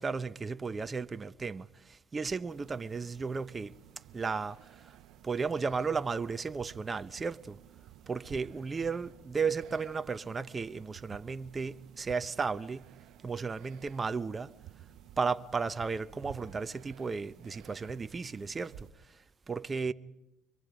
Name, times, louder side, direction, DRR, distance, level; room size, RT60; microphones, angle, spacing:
voice 1, 0.0-3.7 4.1-4.9 5.2-7.6 8.1-12.9 13.2-14.5 15.2-19.2 19.5-19.9, right 5 dB, 25° right, 0.9 m, -34 dB
sound 1, 2.5-18.9, right 13 dB, 70° right, 1.1 m, -54 dB
25.5 x 22.5 x 5.1 m
supercardioid pair, 85°, 0 cm